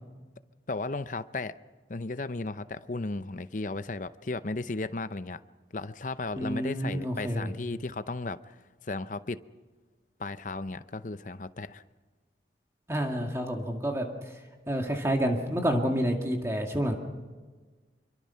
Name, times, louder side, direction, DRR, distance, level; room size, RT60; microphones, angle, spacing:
voice 1, 0.7-1.5 1.9-5.4 5.7-8.5 8.8-9.4 10.2-11.8, left 3 dB, 45° left, 13 dB, 0.7 m, -35 dB
voice 2, 6.4-7.5 12.9-14.1 14.7-17.0, equal, 15° right, 2 dB, 2.0 m, -28 dB
26.0 x 24.0 x 5.7 m, 1.4 s
head